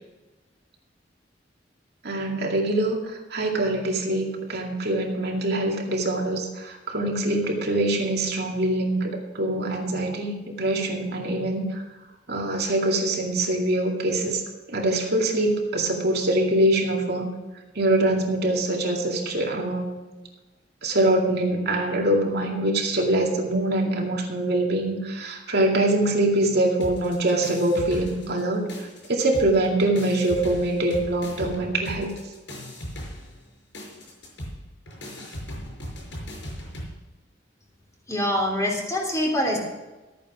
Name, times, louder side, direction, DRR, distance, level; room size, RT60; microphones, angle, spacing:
voice 1, 2.0-3.0 3.3-11.8 12.3-14.4 14.7-17.3 17.8-20.0 20.8-28.6 29.1-32.1, right 1 dB, 60° right, 0 dB, 2.3 m, -24 dB
sound 1, 26.8-28.4 28.7-36.9, equal, 70° left, 5.4 m, -38 dB
voice 2, 38.1-39.6, equal, 15° left, 0 dB, 3.2 m, -24 dB
13.5 x 9.3 x 6.2 m, 1.1 s
head